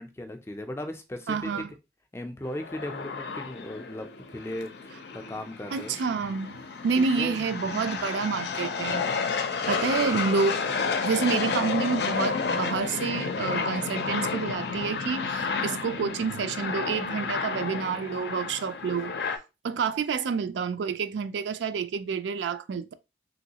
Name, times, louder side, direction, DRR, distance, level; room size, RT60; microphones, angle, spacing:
voice 1, 0.0-1.6 2.1-6.0 7.0-7.9 9.6-9.9, left 1 dB, 15° left, 0.4 m, -38 dB
voice 2, 1.3-1.7 5.7-6.6 6.8-9.0 9.7-10.8 11.0-19.1 19.6-22.9, right 5 dB, 85° right, 0.4 m, -28 dB
sound 1, 2.4-19.4, left 5 dB, 70° left, 0.5 m, -31 dB
3.0 x 3.0 x 2.8 m
head